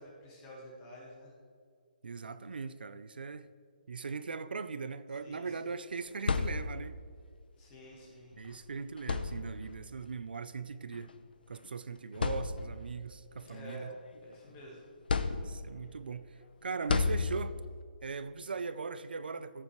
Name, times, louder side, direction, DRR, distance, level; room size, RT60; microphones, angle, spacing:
voice 1, 0.0-1.3 5.2-5.5 7.6-8.3 13.5-13.9 14.2-14.8, equal, 15° left, 1.7 m, -49 dB
voice 2, 2.0-3.5 3.9-7.0 8.3-11.1 11.5-13.9 15.4-17.5 18.0-19.6, right 5 dB, 80° right, 0.6 m, -40 dB
sound 1, 5.9-7.1 8.3-8.5 9.0-9.8 10.9-11.1 11.6-11.7 12.1-13.0 13.5-14.5 15.1-15.9 16.9-17.8, left 4 dB, 75° left, 0.7 m, -33 dB
15.0 x 8.6 x 3.2 m
hypercardioid pair, 175°, 5 cm